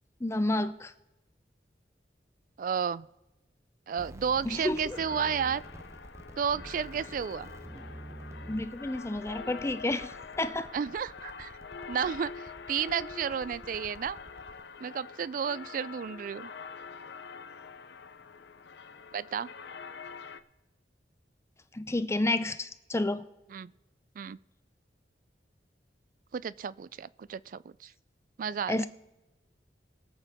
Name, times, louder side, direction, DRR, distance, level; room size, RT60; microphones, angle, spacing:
voice 1, 0.2-0.9 4.5-5.0 8.5-10.7 21.7-23.2 28.7-28.9, left 2 dB, 15° left, 12 dB, 0.5 m, -30 dB
voice 2, 2.6-3.1 3.9-5.6 6.4-7.5 10.7-11.6 11.9-14.2 14.8-16.5 19.1-19.5 23.5-23.7 24.2-24.4 26.3-27.9 28.4-28.8, right 7 dB, 50° right, 20 dB, 0.3 m, -32 dB
sound 1, 4.0-14.6, right 1 dB, 15° right, 0.8 m, -48 dB
sound 2, 4.9-20.4, left 5 dB, 70° left, 0.6 m, -45 dB
22.5 x 8.2 x 3.6 m, 0.99 s
head